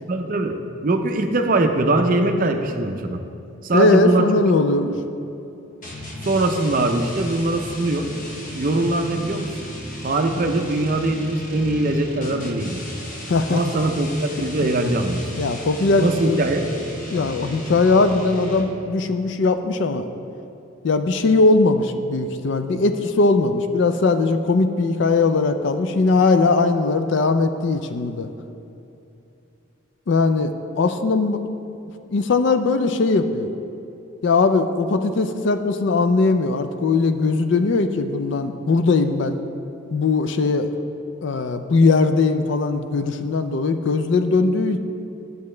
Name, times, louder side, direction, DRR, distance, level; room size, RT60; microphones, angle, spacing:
voice 1, 0.1-0.5 0.8-3.2 3.6-4.3 6.2-8.1 8.5-9.5 10.0-12.8 13.5-15.3 16.0-16.7, right 2 dB, 40° right, 5 dB, 0.5 m, -21 dB
voice 2, 3.7-5.0 13.3-13.6 15.4-16.4 17.1-20.1 20.8-28.3 30.1-31.5 32.1-33.5 34.2-39.4 39.9-40.7 41.2-44.8, left 3 dB, 55° left, 9 dB, 0.4 m, -19 dB
sound 1, 5.8-18.9, equal, 40° left, 0.9 m, -35 dB
10.5 x 6.9 x 3.2 m, 2.7 s
head